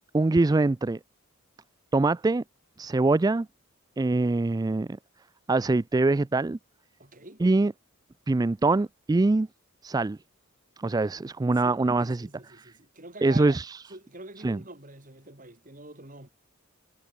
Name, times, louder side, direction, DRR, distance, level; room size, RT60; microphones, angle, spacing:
voice 1, 0.1-1.0 1.9-2.4 2.8-3.5 4.0-5.0 5.5-6.6 7.4-7.7 8.3-9.5 9.8-10.2 10.8-12.7 13.2-13.8 14.4-14.6, right 2 dB, 20° right, 0.3 m, -24 dB
voice 2, 7.0-7.4 11.6-13.6 13.9-16.3, right 2 dB, 40° right, 4.4 m, -45 dB
head